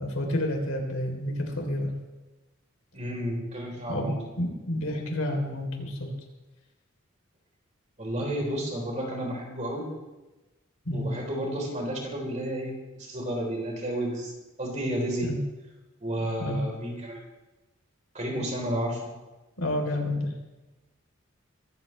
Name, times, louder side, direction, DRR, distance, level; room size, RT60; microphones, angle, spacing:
voice 1, 0.0-1.9 3.9-4.1 4.4-6.0 10.9-11.1 15.2-15.4 16.4-16.6 19.6-20.3, left 1 dB, 80° left, 2 dB, 3.4 m, -29 dB
voice 2, 2.9-4.2 8.0-9.9 10.9-14.3 14.6-15.3 16.0-17.2 18.1-19.1, right 1 dB, 35° right, 0 dB, 3.8 m, -31 dB
23.0 x 14.5 x 3.3 m, 1.1 s
head